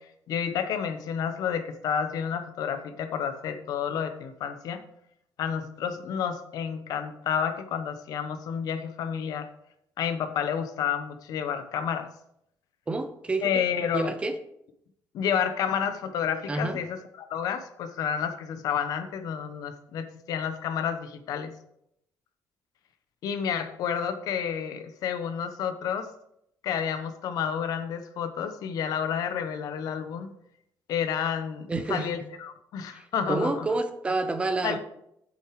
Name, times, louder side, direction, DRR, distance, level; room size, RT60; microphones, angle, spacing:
voice 1, 0.3-4.8 5.4-9.5 10.0-12.1 13.4-14.1 15.1-21.5 23.2-26.1 26.6-30.3 30.9-33.7 34.6-34.8, left 8 dB, 65° left, 9 dB, 1.1 m, -30 dB
voice 2, 12.9-13.6 13.9-14.4 16.5-16.8 31.7-32.3 32.9-34.8, right 2 dB, 15° right, 9 dB, 0.7 m, -29 dB
8.2 x 8.1 x 4.9 m, 0.76 s
cardioid pair, 175°, 7 cm